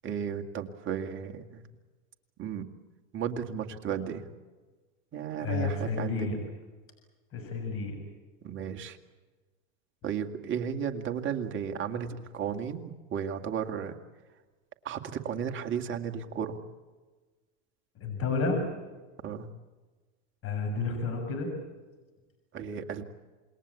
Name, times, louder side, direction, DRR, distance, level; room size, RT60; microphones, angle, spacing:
voice 1, 0.0-1.6 2.4-2.7 3.1-4.3 5.1-6.4 8.4-9.0 10.0-14.0 14.8-16.6 19.2-19.5 22.5-23.0, right 8 dB, 30° right, 4 dB, 2.4 m, -34 dB
voice 2, 5.4-6.4 7.3-8.0 18.0-18.6 20.4-21.5, left 4 dB, 35° left, 5 dB, 6.5 m, -31 dB
28.0 x 21.0 x 8.6 m, 1.3 s
supercardioid pair, 130°, 39 cm